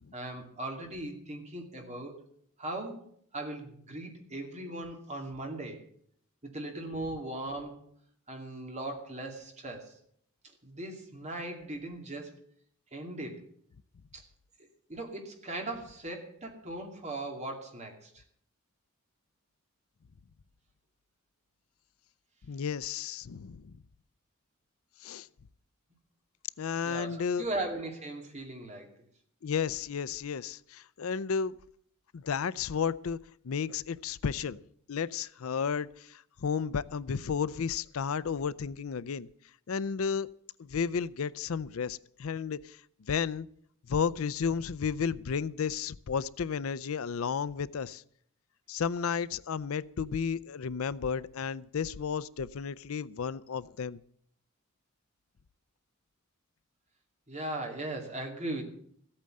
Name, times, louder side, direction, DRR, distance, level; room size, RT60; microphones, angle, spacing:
voice 1, 0.1-2.3 2.6-5.8 6.4-7.8 8.3-10.0 10.6-12.4 12.9-13.4 14.1-14.2 14.9-18.2 26.8-28.9 57.3-58.6, right 2 dB, 30° right, 3 dB, 2.5 m, -38 dB
voice 2, 22.5-23.7 25.0-25.3 26.6-27.5 29.4-31.6 32.1-33.2 33.4-34.6 34.9-39.3 39.7-40.3 40.6-42.8 43.1-43.5 43.9-48.0 48.7-54.0, left 6 dB, 75° left, 19 dB, 0.5 m, -33 dB
15.0 x 8.8 x 7.6 m, 0.64 s
head